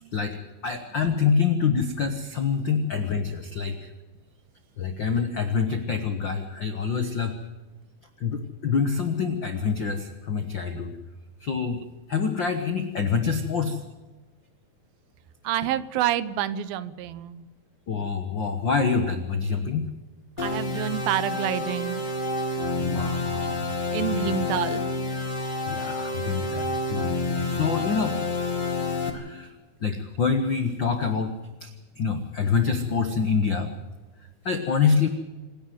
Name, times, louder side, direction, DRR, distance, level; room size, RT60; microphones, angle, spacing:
voice 1, 0.1-3.9 4.8-7.4 8.2-11.0 11.4-11.8 12.1-13.8 17.9-19.8 22.8-23.6 23.9-24.3 25.6-28.1 29.1-29.5 29.8-31.3 31.6-31.7 32.0-33.7 34.4-35.1, left 5 dB, 70° left, 6 dB, 1.1 m, -26 dB
voice 2, 15.4-17.5 20.4-22.1 23.9-24.9 27.3-27.6, right 12 dB, 80° right, 15 dB, 2.6 m, -28 dB
sound 1, 20.4-29.1, left 2 dB, 15° left, 1.9 m, -29 dB
27.0 x 10.5 x 9.3 m, 1.2 s
omnidirectional pair, 4.2 m